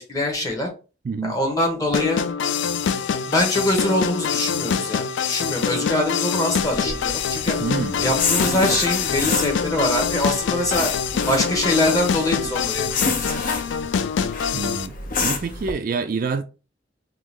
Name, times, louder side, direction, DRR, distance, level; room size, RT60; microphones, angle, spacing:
voice 1, 0.1-0.7 1.2-2.2 3.3-7.6 8.0-10.9 11.3-12.9 13.3-13.4, left 1 dB, 20° left, 1.0 m, -23 dB
voice 2, 1.0-1.4 7.6-8.1 14.5-14.9 15.2-16.4, right 4 dB, 50° right, 0.3 m, -27 dB
sound 1, 1.9-14.9, left 7 dB, 85° left, 0.3 m, -25 dB
sound 2, 6.6-15.7, left 4 dB, 50° left, 0.6 m, -29 dB
3.6 x 2.4 x 3.0 m
head